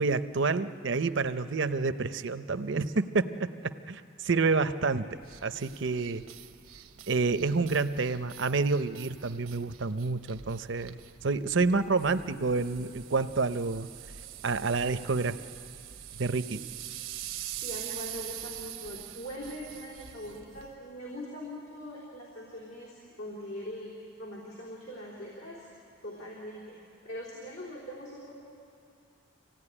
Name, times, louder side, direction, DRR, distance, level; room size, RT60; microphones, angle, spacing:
voice 1, 0.0-5.0 5.4-6.2 7.1-13.9 14.4-15.4 16.2-16.6, right 4 dB, 60° right, 12 dB, 0.7 m, -28 dB
sound 1, 5.2-20.7, right 11 dB, 85° right, 0.9 m, -44 dB
voice 2, 17.5-25.7 26.0-26.8 27.0-28.3, equal, 75° left, -5 dB, 3.7 m, -42 dB
25.0 x 16.5 x 9.9 m, 2.5 s
head